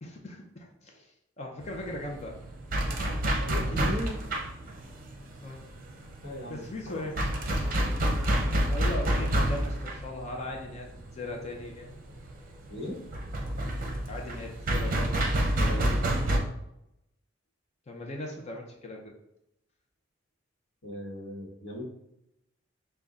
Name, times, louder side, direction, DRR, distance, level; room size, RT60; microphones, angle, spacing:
voice 1, 0.0-2.4 5.4-5.7 6.5-7.2 8.7-12.0 14.1-15.2 17.9-19.1, left 1 dB, 35° left, 1 dB, 0.5 m, -39 dB
sound 1, 1.6-16.4, right 1 dB, 45° right, 0.7 m, -29 dB
voice 2, 3.4-4.2 6.2-7.0 7.8-7.9 12.7-13.0 15.7-16.1 20.8-21.8, left 1 dB, 80° left, -2 dB, 1.1 m, -38 dB
5.2 x 2.3 x 3.5 m, 0.83 s
head